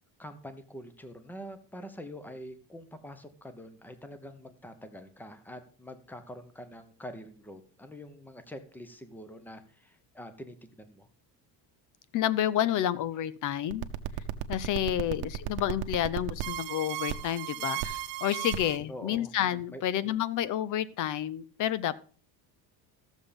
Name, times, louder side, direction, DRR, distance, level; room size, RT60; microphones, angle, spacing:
voice 1, 0.2-11.1 18.9-19.3 19.7-19.8, equal, 5° left, 10 dB, 0.9 m, -45 dB
voice 2, 12.1-13.9 14.5-21.9, left 11 dB, 45° left, 19 dB, 0.6 m, -30 dB
sound 1, 13.7-18.8, right 13 dB, 85° right, 1.0 m, -34 dB
13.5 x 7.3 x 5.2 m, 0.41 s
cardioid pair, 160°, 44 cm